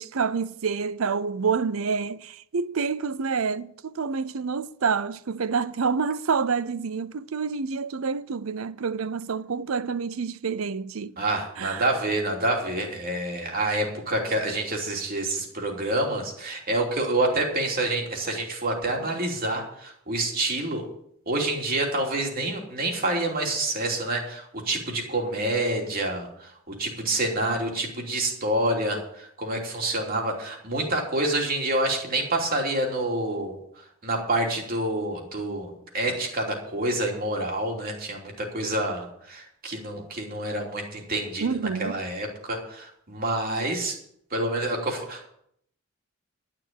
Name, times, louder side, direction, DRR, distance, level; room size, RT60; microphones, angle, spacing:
voice 1, 0.0-11.1 11.6-11.8 41.4-41.9, right 5 dB, 70° right, 0.6 m, -28 dB
voice 2, 11.2-20.9 21.3-33.6 34.0-44.0 44.3-45.3, right 1 dB, 45° right, 3.1 m, -27 dB
12.0 x 6.9 x 8.9 m
head